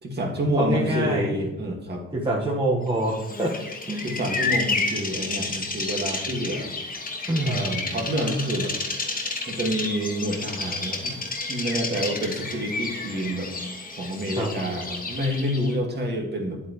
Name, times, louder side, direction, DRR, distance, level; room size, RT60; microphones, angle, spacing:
voice 1, 0.0-2.0 4.0-6.7 7.4-8.7 9.5-11.2 11.5-13.5 14.0-16.6, equal, 35° right, 1 dB, 2.1 m, -28 dB
voice 2, 0.5-1.3 2.1-3.5 3.9-4.1 7.3-7.7 14.4-14.5, right 1 dB, 15° right, -5 dB, 1.5 m, -25 dB
Bird vocalization bird call bird song, 3.1-15.8, left 3 dB, 30° left, 1.3 m, -31 dB
9.3 x 8.1 x 3.2 m, 0.95 s
cardioid pair, 90°, 30 cm